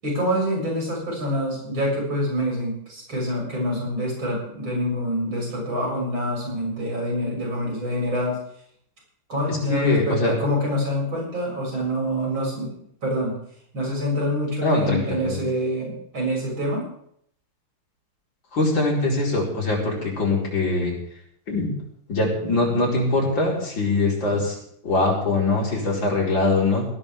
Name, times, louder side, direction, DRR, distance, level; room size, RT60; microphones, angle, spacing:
voice 1, 0.0-8.4 9.3-13.4 13.7-16.9, equal, 75° right, -2 dB, 7.9 m, -26 dB
voice 2, 9.5-10.3 14.6-15.4 18.5-20.9 21.5-21.7 22.1-24.6 24.8-26.9, left 2 dB, 65° left, -3 dB, 5.7 m, -22 dB
19.0 x 17.5 x 3.7 m, 0.67 s
omnidirectional pair, 2.2 m